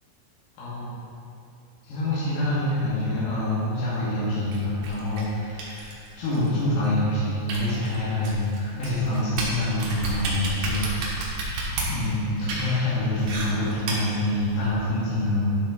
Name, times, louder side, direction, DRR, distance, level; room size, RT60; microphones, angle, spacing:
voice 1, 0.6-1.0 1.9-11.4 11.9-15.5, left 1 dB, 85° left, -10 dB, 4.8 m, -26 dB
sound 1, 4.5-14.8, right 2 dB, 65° right, 2.6 m, -33 dB
12.0 x 5.8 x 3.9 m, 2.7 s
omnidirectional pair, 5.8 m